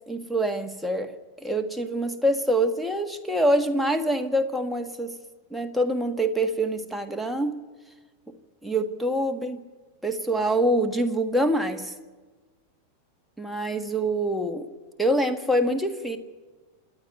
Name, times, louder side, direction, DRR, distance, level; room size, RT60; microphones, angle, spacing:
voice 1, 0.1-1.1 1.4-5.1 5.5-7.6 8.6-9.6 10.0-11.9 13.4-14.6 15.0-16.2, right 1 dB, ahead, 4 dB, 1.6 m, -25 dB
27.5 x 10.5 x 9.2 m, 1.3 s
figure-of-eight pair, 90°, 0 cm